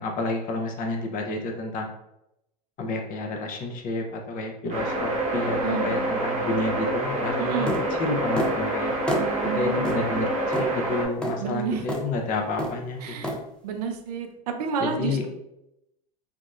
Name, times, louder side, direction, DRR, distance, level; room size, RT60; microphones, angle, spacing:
voice 1, 0.0-1.9 2.8-7.7 8.0-8.9 9.6-10.3 10.6-13.3 14.8-15.3, left 2 dB, 40° left, 2 dB, 0.6 m, -30 dB
sound 1, 4.7-11.0, right 1 dB, 40° right, 0.9 m, -27 dB
voice 2, 5.4-6.0 7.4-7.8 9.2-10.0 11.4-11.9 13.0-13.3 13.6-15.3, right 5 dB, 70° right, 5 dB, 0.5 m, -30 dB
sound 2, 7.7-7.8 8.4-8.6 9.1-9.3 9.8-10.0 10.5-10.7 11.2-11.4 11.9-12.1 12.6-12.8 13.2-13.4, equal, 5° left, 0.4 m, -27 dB
3.5 x 2.0 x 2.3 m, 0.85 s
hypercardioid pair, 85°, 20 cm